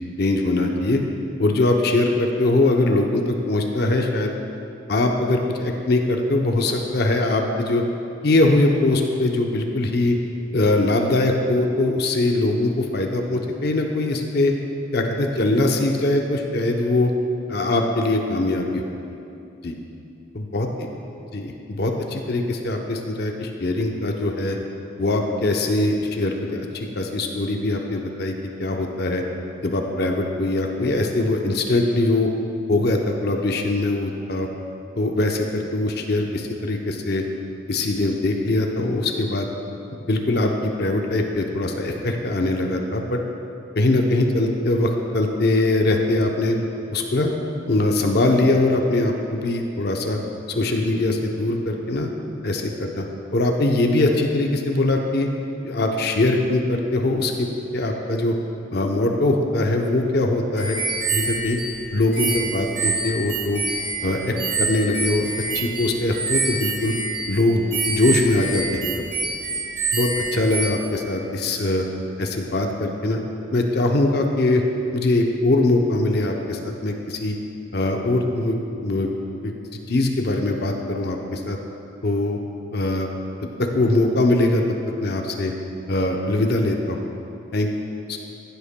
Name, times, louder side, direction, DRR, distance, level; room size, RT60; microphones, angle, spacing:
voice 1, 0.2-1.0 1.4-4.3 4.9-7.8 8.2-10.2 10.5-14.5 14.9-17.1 17.5-18.8 19.6-19.7 20.3-20.7 21.3-24.6 25.0-29.2 29.6-32.3 32.7-34.5 35.0-37.2 37.7-39.5 40.1-43.2 43.7-46.6 46.9-47.3 47.7-50.2 50.5-52.1 52.4-53.1 53.3-55.3 55.6-58.4 58.7-60.8 61.1-61.6 61.9-63.6 64.0-65.3 65.5-66.9 67.3-69.1 69.9-71.8 72.2-73.2 73.5-74.6 74.9-77.4 77.7-78.6 78.8-79.1 79.4-79.5 79.9-81.6 82.0-82.4 82.7-83.1 83.6-84.6 85.0-85.5 85.9-87.0 87.5-87.7 88.1-88.2, left 2 dB, 50° left, 2 dB, 0.7 m, -22 dB
sound 1, 60.6-70.7, right 4 dB, 45° right, 1.1 m, -27 dB
14.5 x 8.1 x 2.2 m, 2.7 s
head